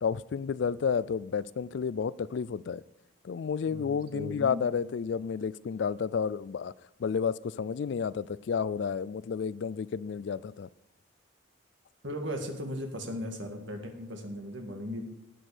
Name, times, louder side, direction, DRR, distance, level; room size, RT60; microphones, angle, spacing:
voice 1, 0.0-2.8 3.2-6.7 7.0-10.7, left 6 dB, 60° left, 19 dB, 0.3 m, -31 dB
voice 2, 3.6-4.6 12.0-15.0, left 1 dB, 60° right, 4 dB, 2.0 m, -37 dB
18.5 x 6.2 x 5.1 m, 0.90 s
head